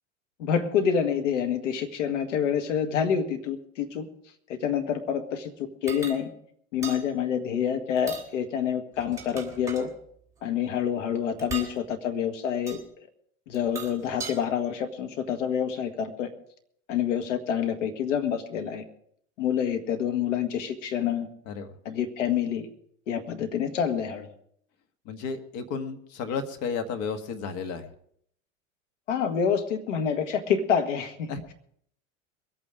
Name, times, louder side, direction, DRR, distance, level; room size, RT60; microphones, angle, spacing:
voice 1, 0.4-4.1 4.5-5.5 5.8-6.3 6.7-9.9 10.4-12.8 13.5-16.3 16.9-18.8 19.4-21.3 21.9-22.7 23.1-24.3 29.1-31.5, left 8 dB, 65° left, 6 dB, 1.9 m, -27 dB
sound 1, 5.9-6.2 6.8-7.0 8.0-8.3 9.0-9.9 11.4-11.7 12.7-12.8 13.5-14.4, right 5 dB, 10° right, 3.1 m, -38 dB
voice 2, 25.1-27.9 31.3-31.4, left 5 dB, 50° left, 7 dB, 1.8 m, -33 dB
22.0 x 8.8 x 5.0 m, 0.67 s
figure-of-eight pair, 85°, 39 cm